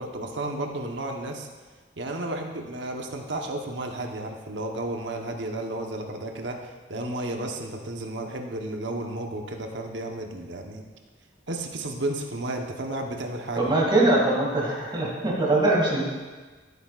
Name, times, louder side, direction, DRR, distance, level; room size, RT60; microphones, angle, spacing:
voice 1, 0.0-1.5 2.0-10.8 11.5-13.7, right 1 dB, 70° right, 2 dB, 1.1 m, -32 dB
voice 2, 13.6-16.0, right 2 dB, 25° right, -4 dB, 2.4 m, -22 dB
14.5 x 8.3 x 2.5 m, 1.3 s
head